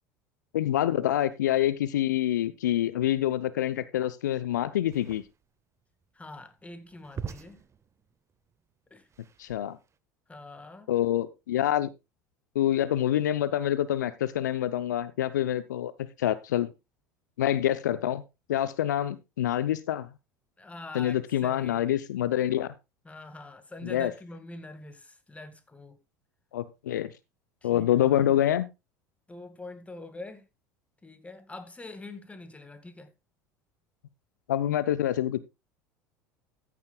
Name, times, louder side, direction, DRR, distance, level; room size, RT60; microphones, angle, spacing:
voice 1, 0.5-5.2 9.4-9.8 10.9-11.9 12.5-16.7 17.4-18.2 18.5-20.1 20.9-22.7 23.8-24.1 26.5-27.1 27.6-28.6 34.5-35.4, left 12 dB, 75° left, 0.6 m, -26 dB
sound 1, 4.8-10.0, right 6 dB, 30° right, 0.9 m, -44 dB
voice 2, 6.1-7.6 8.9-9.1 10.3-10.9 20.6-22.0 23.0-26.0 27.6-28.4 29.3-30.5 31.0-33.1, left 2 dB, 15° left, 2.0 m, -44 dB
14.0 x 9.5 x 2.3 m
hypercardioid pair, 70°, 10 cm